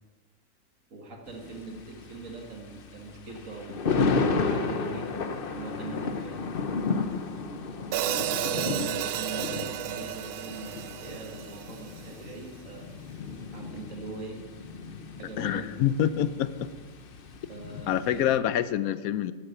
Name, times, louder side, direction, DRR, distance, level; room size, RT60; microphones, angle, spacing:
voice 1, 0.9-6.5 8.0-12.9 13.5-14.4 15.2-15.7 17.5-18.3, right 3 dB, 60° right, 2 dB, 2.0 m, -42 dB
Thunder, 1.3-18.4, left 4 dB, 45° left, 0.8 m, -33 dB
Hi-hat, 7.9-12.1, right 11 dB, 80° right, 1.1 m, -32 dB
voice 2, 15.4-16.5 17.9-19.3, left 10 dB, 75° left, 14 dB, 1.1 m, -26 dB
12.5 x 8.1 x 6.6 m, 1.4 s
omnidirectional pair, 1.6 m